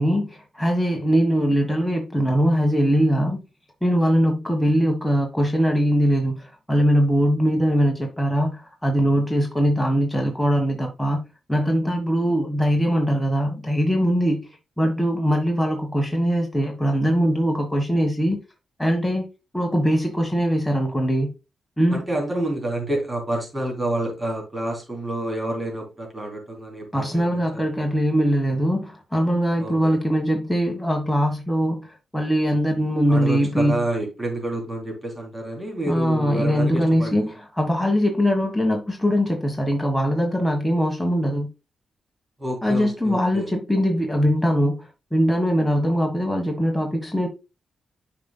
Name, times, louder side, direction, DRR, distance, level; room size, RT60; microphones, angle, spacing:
voice 1, 0.0-3.4 3.8-11.2 11.5-14.5 14.8-18.4 18.8-19.3 19.5-21.3 21.8-22.0 26.9-31.9 32.1-33.7 35.9-41.5 42.6-47.3, equal, ahead, 1.4 m, -21 dB
voice 2, 21.9-27.6 29.6-29.9 33.1-37.3 42.4-43.5, right 1 dB, 20° right, 3.3 m, -28 dB
9.3 x 5.3 x 2.2 m
cardioid pair, 75°, 0 cm